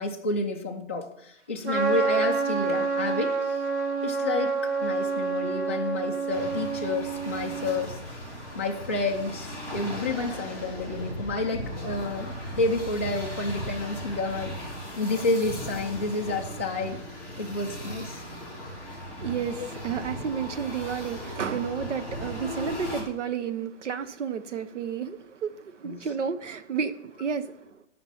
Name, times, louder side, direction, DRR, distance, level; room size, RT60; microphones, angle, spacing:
voice 1, 0.0-3.6 4.0-8.0 8.5-14.6 15.0-17.0 17.4-18.2 19.6-19.7 25.8-26.1, left 2 dB, 10° left, -3 dB, 0.4 m, -30 dB
Trumpet, 1.6-7.9, right 4 dB, 65° right, 2.8 m, -28 dB
sound 1, 6.3-23.0, equal, 20° right, 5.2 m, -37 dB
voice 2, 19.2-27.8, right 7 dB, 90° right, 11 dB, 1.1 m, -31 dB
13.5 x 5.9 x 5.7 m, 0.77 s
hypercardioid pair, 170°, 35 cm